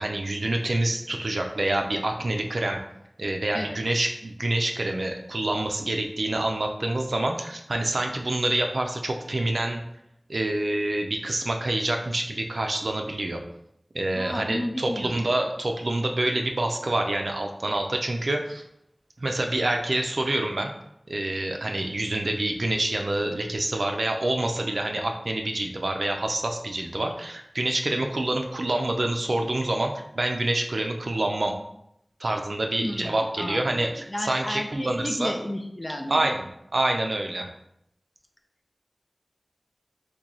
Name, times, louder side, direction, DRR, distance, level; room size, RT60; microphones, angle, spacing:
voice 1, 0.0-2.8 3.2-9.8 10.3-13.4 13.9-18.6 19.2-20.7 21.1-31.5 32.2-35.3 36.1-36.5 36.7-37.5, right 1 dB, 85° right, 3 dB, 0.4 m, -27 dB
voice 2, 14.2-15.1 32.8-33.8 34.1-36.4, left 1 dB, 30° left, 4 dB, 0.4 m, -33 dB
3.0 x 2.2 x 3.8 m, 0.77 s
wide cardioid pair, 45°, 0 cm